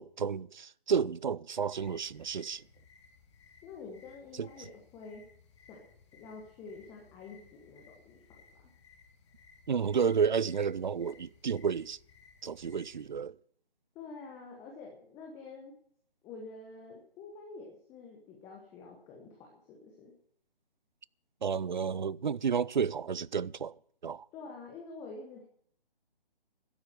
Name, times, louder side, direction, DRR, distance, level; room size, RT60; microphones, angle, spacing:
voice 1, 0.0-2.6 4.3-4.7 9.7-12.0 12.4-13.4 21.4-23.8 24.0-24.3, right 6 dB, 50° right, 0.5 m, -31 dB
sound 1, 1.7-13.1, left 6 dB, 30° left, 2.1 m, -60 dB
voice 2, 3.6-5.2 5.7-5.9 6.1-8.7 13.9-15.7 16.2-20.1 24.3-25.4, left 4 dB, 10° left, 1.1 m, -48 dB
12.0 x 8.7 x 9.0 m
figure-of-eight pair, 145°, 30 cm